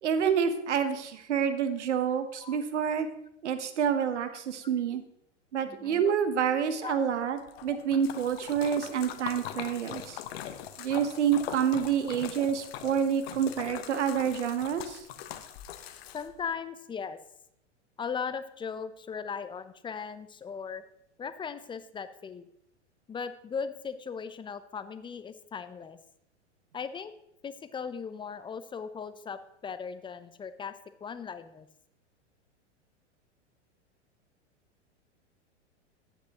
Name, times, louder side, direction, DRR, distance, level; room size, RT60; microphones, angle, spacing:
voice 1, 0.0-3.1 3.4-5.0 5.5-10.2 10.8-15.0, right 8 dB, 75° right, 9 dB, 1.2 m, -28 dB
voice 2, 5.7-6.1 6.5-7.1 7.5-7.7 16.1-17.2 18.0-20.8 21.2-22.5 23.1-26.0 26.7-27.1 27.4-30.7 31.0-31.7, left 6 dB, 15° left, 12 dB, 0.6 m, -38 dB
Splash splatter, 7.4-16.5, left 10 dB, 55° left, 1.0 m, -42 dB
14.0 x 9.2 x 3.0 m, 0.76 s
hypercardioid pair, 100°, 36 cm